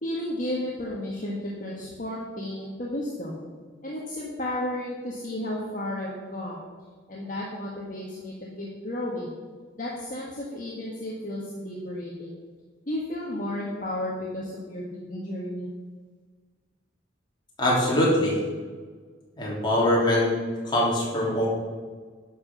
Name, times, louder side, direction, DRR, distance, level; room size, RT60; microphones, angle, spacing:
voice 1, 0.0-3.4 3.8-6.6 7.1-9.3 9.8-12.3 12.9-15.7, left 1 dB, 40° left, -4 dB, 1.5 m, -33 dB
voice 2, 17.6-18.3 19.4-20.3 20.6-21.5, left 1 dB, 20° left, -6 dB, 3.3 m, -22 dB
11.0 x 6.0 x 6.3 m, 1.5 s
head